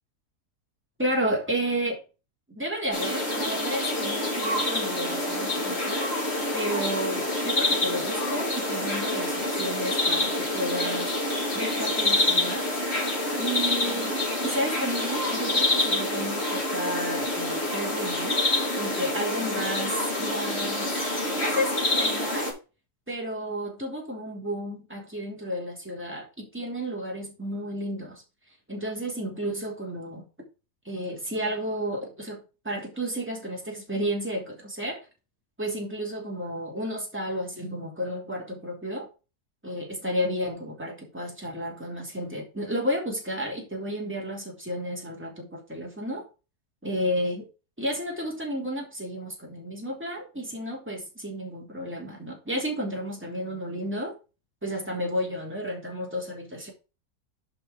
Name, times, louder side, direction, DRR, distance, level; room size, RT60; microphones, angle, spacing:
voice 1, 1.0-2.0 2.5-11.1 11.5-12.7 13.4-14.2 14.4-18.4 18.8-20.9 21.3-22.5 23.1-28.2 28.7-30.3 30.8-35.0 35.6-39.1 39.6-46.2 46.8-47.5 47.8-54.1 54.6-56.7, equal, 5° right, 2.8 m, -32 dB
sound 1, 2.9-22.5, left 1 dB, 40° left, 3.1 m, -27 dB
6.9 x 5.4 x 5.1 m
omnidirectional pair, 1.7 m